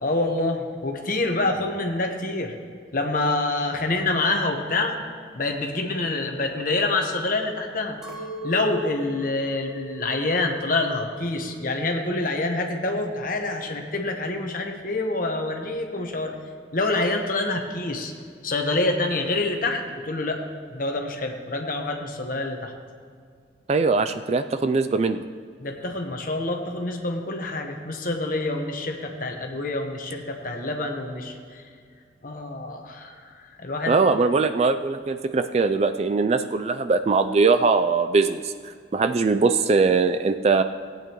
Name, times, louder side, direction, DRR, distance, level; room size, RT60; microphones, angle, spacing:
voice 1, 0.0-2.5 2.9-4.9 5.3-8.0 8.4-16.3 16.7-18.1 18.4-20.4 20.7-22.7 25.6-31.6 32.2-34.0, left 2 dB, 45° left, 3 dB, 1.1 m, -26 dB
Chink clink, 8.0-12.4 12.6-13.4, left 1 dB, 5° right, 1.2 m, -38 dB
voice 2, 23.7-25.2 33.9-38.5 38.9-40.6, right 4 dB, 35° right, 10 dB, 0.3 m, -21 dB
17.5 x 9.0 x 3.0 m, 2.1 s
head